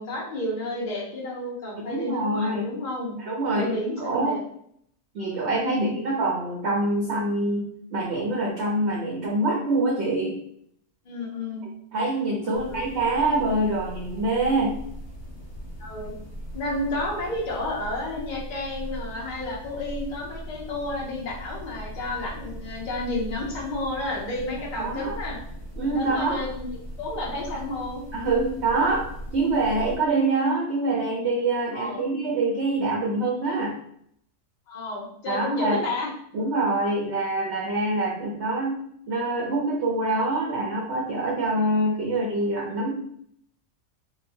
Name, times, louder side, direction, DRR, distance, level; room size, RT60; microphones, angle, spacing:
voice 1, 0.0-3.2 3.5-4.4 5.6-6.0 11.1-11.7 12.5-12.8 15.8-16.1 16.5-25.4 25.9-26.7 27.0-28.0 31.7-32.0 34.7-36.1, left 2 dB, 40° left, -3 dB, 0.7 m, -31 dB
voice 2, 1.8-2.7 3.2-4.4 5.1-10.3 11.9-14.7 24.8-25.1 25.8-26.4 28.1-29.1 29.3-33.7 35.3-35.8 36.3-38.8 39.1-42.9, right 2 dB, 60° right, -2 dB, 0.9 m, -25 dB
sound 1, 12.5-30.0, equal, 20° left, 1.0 m, -39 dB
3.8 x 2.2 x 2.7 m, 0.69 s
omnidirectional pair, 1.5 m